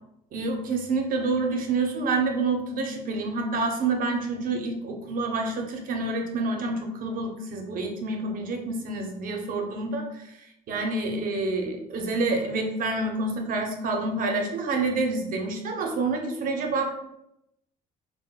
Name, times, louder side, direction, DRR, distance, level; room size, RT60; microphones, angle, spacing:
voice 1, 0.3-10.3 10.7-16.9, right 3 dB, 55° right, 3 dB, 0.6 m, -28 dB
3.7 x 2.1 x 2.3 m, 0.81 s
cardioid pair, 110°, 17 cm